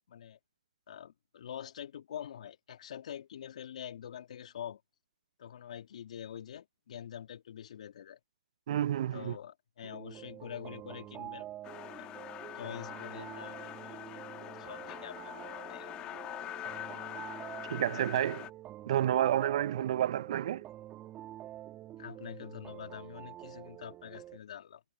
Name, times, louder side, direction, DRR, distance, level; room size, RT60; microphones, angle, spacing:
voice 1, 0.1-0.4 0.9-4.8 5.4-8.2 9.1-11.5 12.0-12.1 12.5-16.2 22.0-24.8, left 9 dB, 55° left, 2.3 m, -46 dB
voice 2, 8.7-9.4 17.7-18.5 18.8-20.6, right 11 dB, 50° right, 0.5 m, -30 dB
sound 1, 9.9-24.4, right 13 dB, 20° right, 1.9 m, -47 dB
sound 2, 11.6-18.5, left 14 dB, 20° left, 1.3 m, -44 dB
hypercardioid pair, 140°, 4 cm